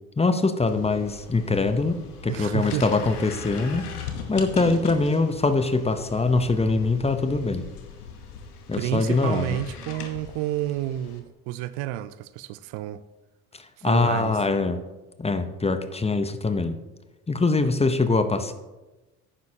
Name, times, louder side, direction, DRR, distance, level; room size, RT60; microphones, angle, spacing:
voice 1, 0.2-3.9 4.3-7.7 8.7-9.6 13.5-14.8 15.2-16.8 17.3-18.5, left 3 dB, 15° left, 0.8 m, -23 dB
sound 1, 0.7-11.2, left 6 dB, 85° left, 1.2 m, -39 dB
voice 2, 2.3-2.8 8.7-13.0 13.8-14.3, right 14 dB, 60° right, 0.6 m, -30 dB
11.5 x 9.5 x 2.8 m
hypercardioid pair, 60°, 44 cm